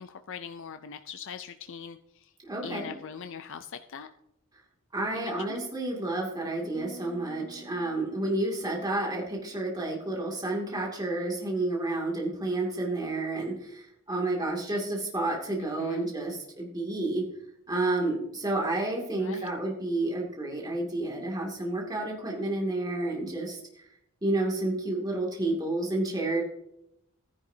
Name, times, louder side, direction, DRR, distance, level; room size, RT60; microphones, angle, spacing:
voice 1, 0.0-2.3 2.6-4.1 5.1-5.3 15.8-16.1 19.2-19.5, left 6 dB, 60° left, 8 dB, 0.5 m, -41 dB
voice 2, 2.4-2.9 4.9-17.2 17.7-23.9 24.2-26.4, right 2 dB, 20° right, -2 dB, 2.4 m, -30 dB
sound 1, 6.7-10.1, right 1 dB, 75° left, 3.1 m, -51 dB
14.5 x 10.5 x 2.8 m, 0.80 s
head